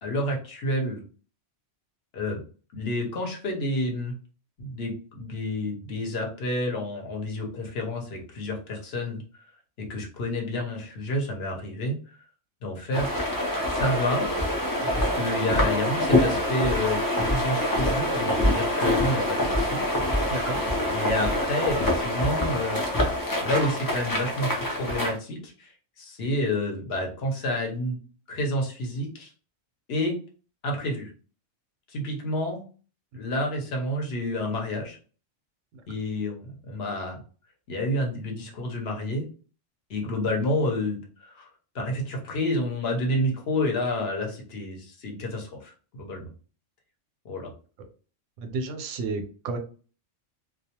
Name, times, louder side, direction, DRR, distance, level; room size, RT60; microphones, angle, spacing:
voice 1, 0.0-1.0 2.1-2.4 2.7-4.1 4.6-9.2 9.8-12.0 12.6-13.1 13.6-14.3 14.8-19.8 20.9-22.8 23.4-25.7 26.0-28.0 28.3-29.3 29.9-30.2 30.6-31.1 31.9-32.6 33.2-35.0 35.9-37.2 37.7-39.3 39.9-41.5 41.7-46.3 47.2-47.5, left 1 dB, 60° left, 1 dB, 0.9 m, -29 dB
sound 1, 12.9-25.1, left 1 dB, 30° left, 0.4 m, -25 dB
voice 2, 48.4-49.6, right 3 dB, 90° right, 6 dB, 0.9 m, -32 dB
2.3 x 2.2 x 2.8 m, 0.38 s
omnidirectional pair, 1.2 m